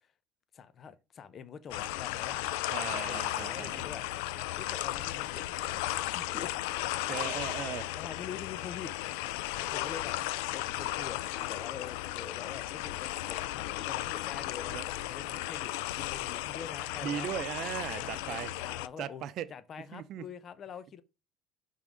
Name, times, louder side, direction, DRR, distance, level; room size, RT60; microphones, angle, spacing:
voice 1, 0.5-4.0 4.6-6.5 7.3-7.4 7.9-8.9 9.6-10.2 10.5-17.3 17.9-19.2 19.5-21.0, left 7 dB, 40° left, 0.6 m, -45 dB
sound 1, 1.7-18.9, left 16 dB, 85° left, 0.3 m, -35 dB
voice 2, 2.7-3.8 7.1-7.9 14.7-14.9 17.0-18.5 19.0-19.5 19.9-20.3, right 10 dB, 60° right, 0.6 m, -37 dB
5.5 x 3.7 x 5.1 m
supercardioid pair, 110°, 0 cm